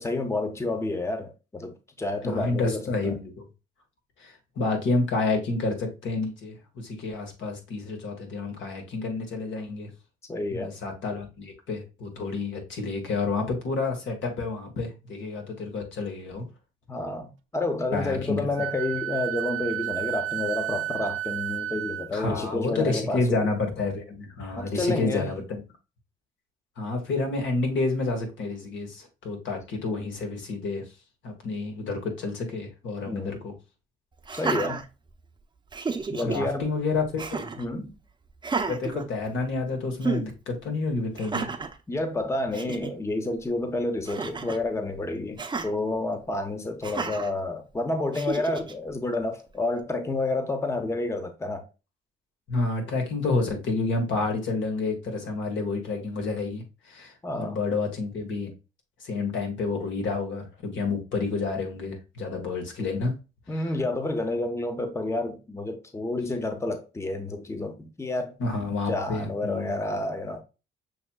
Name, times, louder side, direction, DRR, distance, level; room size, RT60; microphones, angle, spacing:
voice 1, 0.0-3.1 10.3-10.7 16.9-23.5 24.6-25.3 33.1-33.4 34.3-34.8 36.1-36.7 37.6-38.0 41.9-51.7 57.2-57.6 63.5-68.3 68.9-70.4, left 2 dB, 15° left, 0.7 m, -29 dB
voice 2, 2.2-3.4 4.2-9.9 10.5-16.4 17.9-18.5 22.1-25.6 26.8-30.8 31.2-33.5 36.2-37.5 38.7-41.5 52.5-58.5 59.0-63.2 68.4-69.8, left 3 dB, 70° left, 1.5 m, -29 dB
Wind instrument woodwind instrument, 18.6-22.1, right 13 dB, 75° right, 0.4 m, -31 dB
Laughter, 34.2-35.3 35.7-36.4 37.2-37.7 38.4-39.6 40.0-40.3 41.2-41.8 42.3-42.4 42.5-42.9 44.1-44.6 45.4-45.7 46.8-47.3 48.1-48.7, right 4 dB, 25° right, 0.6 m, -32 dB
6.3 x 3.0 x 2.2 m
cardioid pair, 90°, 20 cm